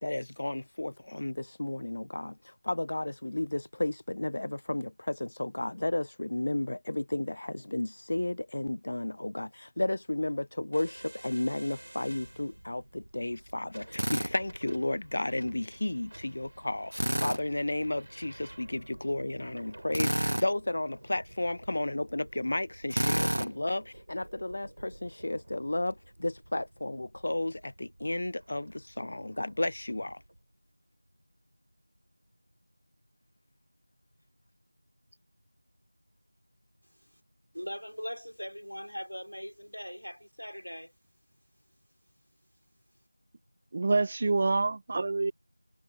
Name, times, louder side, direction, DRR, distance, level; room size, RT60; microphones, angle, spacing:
voice 1, 0.0-30.2, left 1 dB, 35° left, 0.6 m, -33 dB
sound 1, 10.7-30.4, right 1 dB, 45° right, 5.8 m, -52 dB
Drill, 13.9-14.3 16.9-17.4 19.9-20.5 22.9-23.5, right 1 dB, 65° right, 1.0 m, -29 dB
voice 2, 37.5-40.9, equal, 85° left, 3.6 m, -40 dB
voice 3, 43.7-45.3, right 3 dB, 20° right, 0.4 m, -27 dB
figure-of-eight pair, 175°, 0 cm